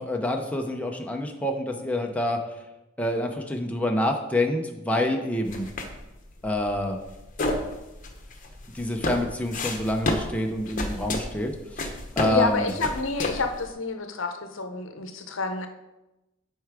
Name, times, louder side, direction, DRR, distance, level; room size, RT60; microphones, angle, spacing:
voice 1, 0.0-2.4 3.0-5.7 6.4-7.0 8.7-11.8 12.2-12.7, left 1 dB, 5° left, 2 dB, 0.6 m, -27 dB
sound 1, 5.5-13.7, left 2 dB, 40° left, 0.9 m, -32 dB
voice 2, 12.2-15.7, left 3 dB, 70° left, 7 dB, 0.8 m, -28 dB
8.2 x 4.6 x 4.8 m, 0.99 s
head